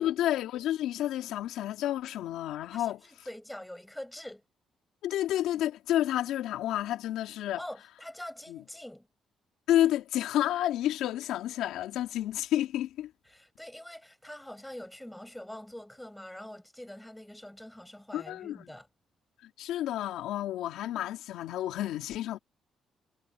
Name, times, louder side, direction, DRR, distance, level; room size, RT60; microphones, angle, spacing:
voice 1, 0.0-3.0 5.0-7.6 8.5-8.6 9.7-13.1 18.1-18.7 19.6-22.4, left 12 dB, 85° left, 3.5 m, -30 dB
voice 2, 2.7-4.4 7.6-9.1 13.3-18.9, left 1 dB, 5° left, 6.1 m, -44 dB
cardioid pair, 90°, 0 cm